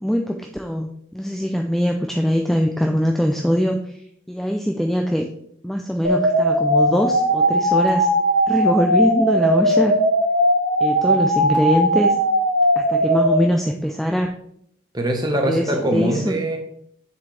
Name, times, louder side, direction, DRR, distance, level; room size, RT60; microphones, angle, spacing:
voice 1, 0.0-3.8 4.3-5.3 5.6-8.1 8.5-9.9 10.8-12.1 12.8-14.3 15.5-16.4, equal, ahead, 3 dB, 0.4 m, -22 dB
sound 1, 6.0-13.4, equal, 55° right, 2.2 m, -18 dB
voice 2, 14.9-16.6, right 1 dB, 20° right, 3 dB, 1.2 m, -22 dB
7.6 x 6.9 x 3.3 m, 0.69 s
head